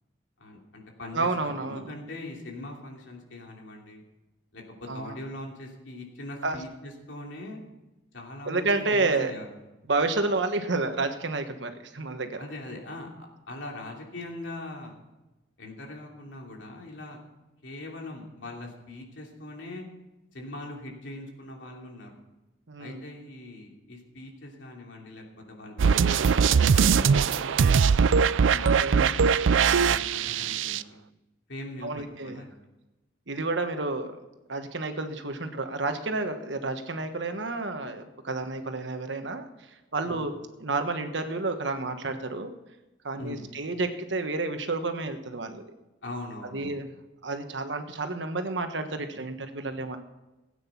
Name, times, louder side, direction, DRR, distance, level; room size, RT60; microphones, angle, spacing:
voice 1, 0.4-4.0 4.5-7.6 8.1-9.5 12.4-13.1 13.5-15.0 15.6-17.2 17.6-19.9 20.3-22.1 22.8-28.0 28.4-31.0 31.5-32.5 40.0-40.3 43.2-43.5 46.0-46.7, left 1 dB, 75° left, 0 dB, 3.0 m, -41 dB
voice 2, 1.1-2.0 4.9-5.1 6.4-6.6 8.4-9.3 9.9-12.4 22.7-23.0 28.6-29.1 31.8-32.4 33.3-34.1 34.5-39.5 39.9-40.3 40.6-42.5 43.0-45.6 46.5-46.9 47.2-50.0, right 3 dB, 70° right, 7 dB, 1.3 m, -30 dB
sound 1, 25.8-30.8, right 6 dB, 85° right, 0.4 m, -21 dB
17.0 x 9.1 x 5.8 m, 1.0 s
head